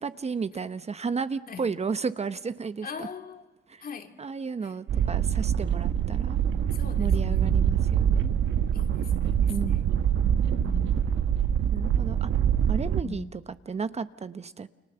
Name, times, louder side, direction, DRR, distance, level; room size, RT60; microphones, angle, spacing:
voice 1, 0.0-3.1 3.7-3.8 4.2-6.4 7.0-8.3 9.5-10.3 10.6-10.7 11.7-12.3 12.7-14.7, right 5 dB, 30° right, 1.0 m, -33 dB
voice 2, 2.8-3.4 3.8-4.2 4.6-4.7 6.7-7.9 8.7-9.8 10.6-11.5 13.0-13.3, left 5 dB, 45° left, 2.7 m, -41 dB
sound 1, 4.9-13.0, right 9 dB, 70° right, 1.3 m, -24 dB
29.5 x 26.5 x 7.0 m
cardioid pair, 90°, 20 cm